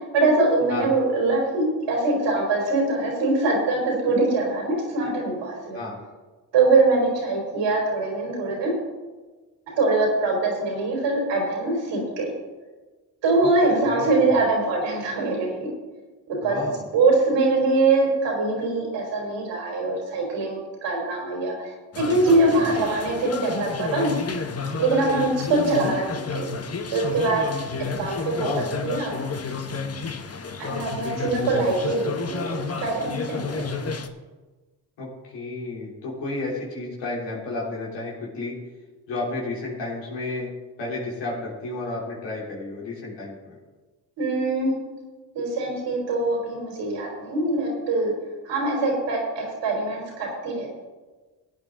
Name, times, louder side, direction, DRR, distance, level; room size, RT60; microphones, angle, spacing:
voice 1, 0.1-5.8 6.5-8.7 9.7-12.3 13.2-15.5 16.3-16.6 16.9-21.7 22.0-24.1 24.8-26.1 26.3-26.5 26.9-27.4 28.0-28.5 28.8-29.1 30.6-33.9 44.2-44.7 45.3-48.1 48.5-50.8, right 2 dB, 85° right, -1 dB, 3.7 m, -23 dB
voice 2, 13.8-14.5 16.4-16.8 22.5-22.7 28.3-28.7 35.0-38.6 39.1-40.5 40.8-43.5, left 2 dB, 85° left, -4 dB, 3.4 m, -32 dB
sound 1, 21.9-34.1, left 4 dB, 35° left, 1.1 m, -31 dB
15.0 x 8.8 x 3.8 m, 1.3 s
supercardioid pair, 55°, 42 cm